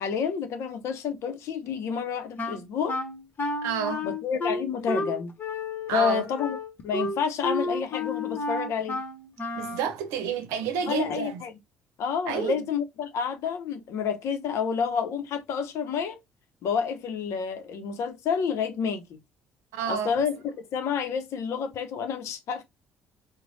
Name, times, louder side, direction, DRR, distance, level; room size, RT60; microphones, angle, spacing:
voice 1, 0.0-3.0 4.0-5.3 5.9-6.6 6.8-9.0 10.9-11.6 12.0-16.2 16.6-19.2 19.8-22.6, left 6 dB, 65° left, 0.8 m, -29 dB
Wind instrument woodwind instrument, 2.4-9.9, left 2 dB, 40° left, 1.2 m, -31 dB
voice 2, 3.6-4.1 5.9-6.3 9.6-11.4 12.3-12.6 19.7-20.1, right 8 dB, 75° right, 0.7 m, -30 dB
3.0 x 2.2 x 4.0 m
hypercardioid pair, 55°, 5 cm